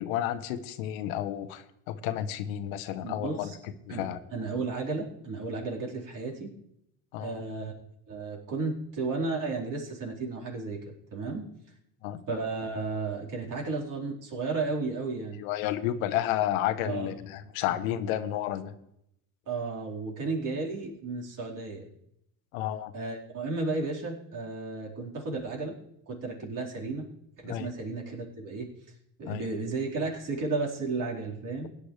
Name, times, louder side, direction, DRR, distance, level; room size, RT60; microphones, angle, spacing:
voice 1, 0.0-3.5 3.9-4.2 7.1-7.3 12.0-12.2 15.4-18.7 22.5-22.9 27.5-27.7 29.3-29.4, left 12 dB, 80° left, 10 dB, 1.1 m, -31 dB
voice 2, 3.0-3.6 3.9-6.5 7.2-7.7 8.1-10.8 11.1-11.4 12.3-15.4 16.8-17.2 17.7-17.8 19.5-21.8 22.9-25.7 26.1-27.1 27.4-28.7 29.2-31.7, right 3 dB, 50° right, -2 dB, 4.4 m, -33 dB
17.0 x 9.9 x 3.3 m, 0.77 s
supercardioid pair, 85°, 41 cm